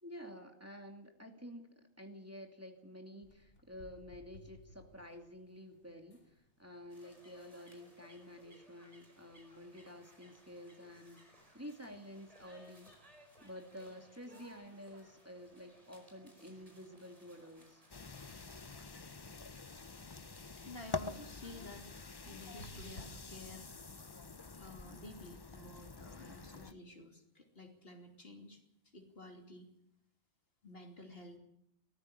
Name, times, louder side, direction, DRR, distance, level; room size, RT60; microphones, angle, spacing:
voice 1, 0.0-12.9 13.4-17.8, equal, 10° right, 3 dB, 2.5 m, -51 dB
sound 1, 3.2-23.0, left 1 dB, 75° left, 3.1 m, -63 dB
sound 2, 6.9-18.8, equal, 30° right, 4.9 m, -63 dB
sound 3, 17.9-26.7, left 3 dB, 25° left, 0.6 m, -47 dB
voice 2, 20.6-23.7 24.5-28.6 28.9-29.7 30.6-31.4, left 1 dB, 55° left, 4 dB, 3.1 m, -52 dB
18.5 x 14.5 x 10.0 m, 0.77 s
omnidirectional pair, 1.2 m